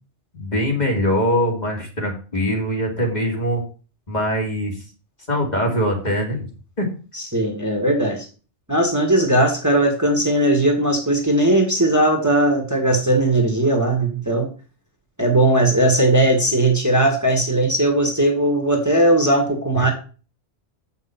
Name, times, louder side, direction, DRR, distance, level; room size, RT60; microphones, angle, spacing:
voice 1, 0.3-3.6 4.1-4.8 5.3-6.5 6.8-6.9 19.7-19.9, equal, 40° left, 0 dB, 2.4 m, -22 dB
voice 2, 7.1-8.3 8.7-14.5 15.2-19.9, right 1 dB, 15° right, 1 dB, 1.7 m, -18 dB
7.9 x 5.8 x 5.7 m, 0.36 s
omnidirectional pair, 1.1 m